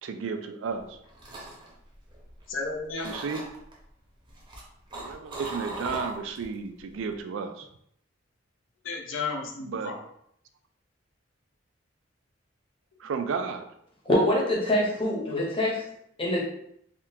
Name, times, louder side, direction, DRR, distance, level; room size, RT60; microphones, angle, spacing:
voice 1, 0.0-1.0 3.0-3.4 4.9-7.7 9.7-9.9 13.0-13.7, right 5 dB, 80° right, 7 dB, 0.4 m, -33 dB
sound 1, 0.8-2.6 3.0-3.7 4.3-6.5 6.9-7.2, right 1 dB, 25° right, 0.7 m, -39 dB
voice 2, 2.5-3.2 8.8-10.0 15.3-15.5, left 4 dB, 80° left, 0 dB, 0.6 m, -33 dB
voice 3, 14.0-15.7 16.2-16.4, left 1 dB, 30° left, -3 dB, 0.8 m, -24 dB
3.6 x 2.3 x 2.7 m, 0.72 s
head